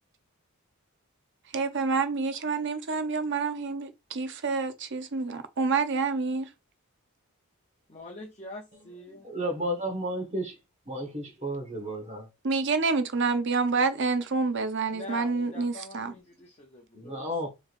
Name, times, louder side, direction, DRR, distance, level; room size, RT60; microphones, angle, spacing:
voice 1, 1.5-6.5 12.4-16.1, right 4 dB, 55° right, 0.7 m, -28 dB
voice 2, 7.9-9.3 14.9-17.3, left 2 dB, 30° left, 0.7 m, -44 dB
voice 3, 9.1-10.6 10.9-12.3 16.9-17.5, equal, 30° right, 1.2 m, -32 dB
4.6 x 3.2 x 2.5 m
head